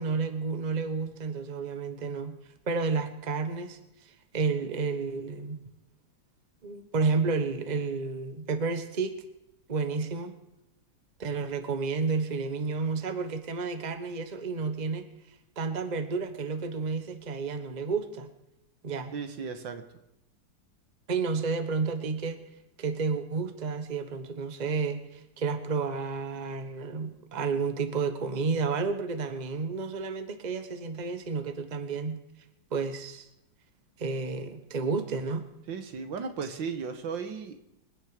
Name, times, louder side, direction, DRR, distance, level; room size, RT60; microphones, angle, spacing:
voice 1, 0.0-2.4 2.7-5.6 6.6-9.1 9.7-10.3 11.2-15.1 15.6-18.3 18.8-19.1 21.1-22.4 22.8-32.2 32.7-33.3 34.0-35.4, right 4 dB, 25° right, 8 dB, 1.1 m, -31 dB
voice 2, 19.1-19.8 35.7-37.6, right 5 dB, 75° right, 8 dB, 2.0 m, -35 dB
26.0 x 10.0 x 5.1 m, 0.86 s
omnidirectional pair, 2.1 m